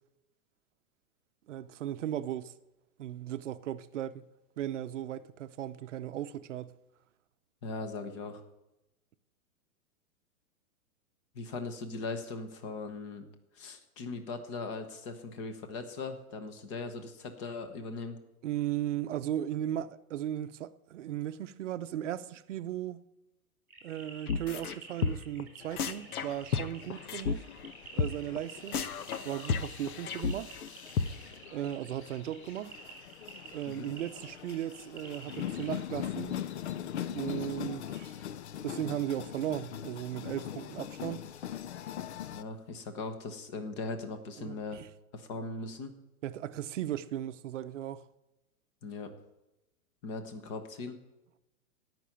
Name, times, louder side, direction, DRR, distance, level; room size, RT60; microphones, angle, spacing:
voice 1, 1.5-2.5 3.0-4.3 4.6-6.7 18.4-23.0 23.8-27.5 27.9-28.8 29.2-30.5 31.5-32.8 33.5-36.4 37.1-38.2 38.6-41.2 44.4-44.9 46.2-48.1, right 11 dB, 55° right, 0.7 m, -36 dB
voice 2, 7.6-8.4 11.3-13.3 13.5-18.2 33.7-33.9 42.3-44.8 45.1-45.9 48.8-49.1 50.0-51.0, left 3 dB, 20° left, 1.0 m, -39 dB
sound 1, 23.7-35.8, right 4 dB, 5° right, 3.0 m, -51 dB
sound 2, 24.3-24.8 25.0-25.4 25.8-27.3 27.6-27.7 28.0-28.1 28.4-28.5 28.7-30.7 31.0-31.1, left 6 dB, 85° left, 1.1 m, -32 dB
sound 3, 25.6-42.4, left 10 dB, 50° left, 0.5 m, -42 dB
17.0 x 6.1 x 9.1 m
hypercardioid pair, 175°, 44 cm